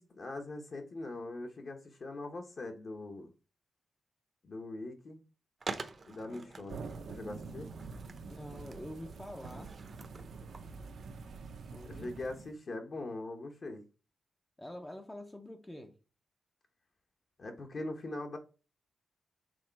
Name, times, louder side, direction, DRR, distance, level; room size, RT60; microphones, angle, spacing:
voice 1, 0.0-3.3 4.4-5.2 6.0-6.8 7.1-7.7 11.8-13.8 17.4-18.4, left 2 dB, 40° left, 0.9 m, -42 dB
Skateboard, 5.6-11.1, right 3 dB, 30° right, 0.7 m, -47 dB
sound 1, 6.7-12.5, right 4 dB, 70° right, 0.8 m, -46 dB
voice 2, 8.3-9.8 11.7-12.1 14.6-15.9, left 1 dB, 10° left, 0.6 m, -46 dB
6.3 x 3.7 x 4.5 m
wide cardioid pair, 165°, 0 cm